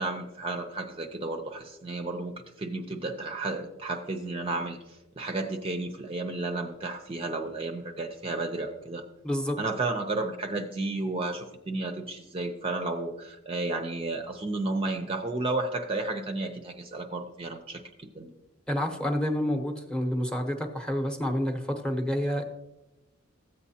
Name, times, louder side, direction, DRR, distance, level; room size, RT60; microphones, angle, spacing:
voice 1, 0.0-2.3 2.6-9.0 9.6-18.3, right 2 dB, 30° right, 5 dB, 0.6 m, -32 dB
voice 2, 9.2-9.6 18.7-22.4, equal, 5° left, 4 dB, 0.9 m, -28 dB
14.5 x 8.2 x 2.8 m, 0.97 s
head